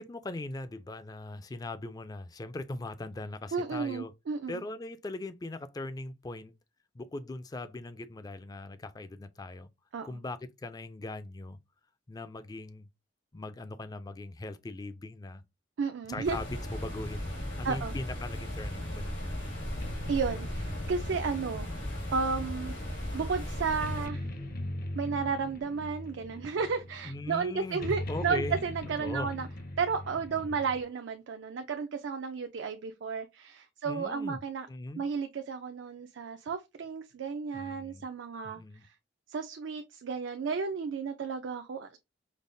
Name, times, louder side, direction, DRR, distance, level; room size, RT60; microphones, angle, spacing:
voice 1, 0.0-4.1 4.5-6.5 6.9-9.7 10.0-11.6 12.1-12.9 13.3-15.4 16.1-19.3 27.0-28.6 29.0-29.3 30.3-30.6 33.8-34.4 34.7-35.1 37.5-38.1 38.4-38.9, left 2 dB, 20° left, 0.3 m, -40 dB
voice 2, 3.5-4.6 9.9-10.2 15.8-16.4 17.6-17.9 20.1-21.7 22.1-22.7 23.1-24.3 25.0-29.5 29.8-34.7 35.0-38.6 39.3-42.0, right 5 dB, 75° right, 0.4 m, -33 dB
sound 1, 16.2-24.1, equal, 80° left, 1.6 m, -36 dB
sound 2, 19.6-30.8, left 1 dB, 50° left, 0.6 m, -41 dB
5.2 x 2.0 x 2.6 m
head